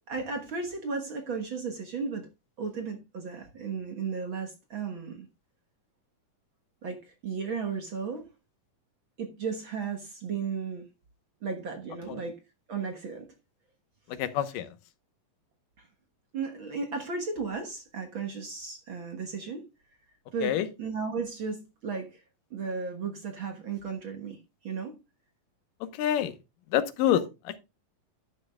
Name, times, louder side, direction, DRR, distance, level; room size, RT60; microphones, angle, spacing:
voice 1, 0.1-2.3 2.6-5.3 6.8-8.3 9.2-10.9 11.4-12.4 12.7-13.3 15.8-15.9 16.3-19.7 20.3-22.2 22.5-25.0 27.1-27.2, right 5 dB, 50° right, 1.6 m, -35 dB
voice 2, 14.1-14.7 20.4-20.7 25.8-26.4 26.7-27.6, left 11 dB, 90° left, 2.7 m, -27 dB
12.0 x 10.0 x 2.3 m
omnidirectional pair, 3.7 m